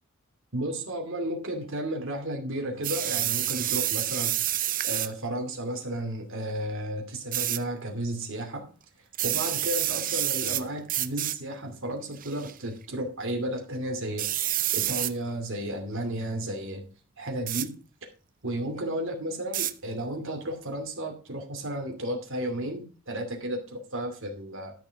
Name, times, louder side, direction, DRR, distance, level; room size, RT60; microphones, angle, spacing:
voice 1, 0.5-4.4 4.8-8.7 9.2-16.9 17.2-17.7 18.4-24.7, right 1 dB, 60° right, 3 dB, 2.6 m, -33 dB
sound 1, 2.8-5.1 7.3-7.6 9.1-10.6 10.9-11.4 12.2-12.5 14.2-15.1 17.5-17.7 19.5-19.7, right 13 dB, 40° right, 0.6 m, -28 dB
12.0 x 6.8 x 4.6 m, 0.36 s
head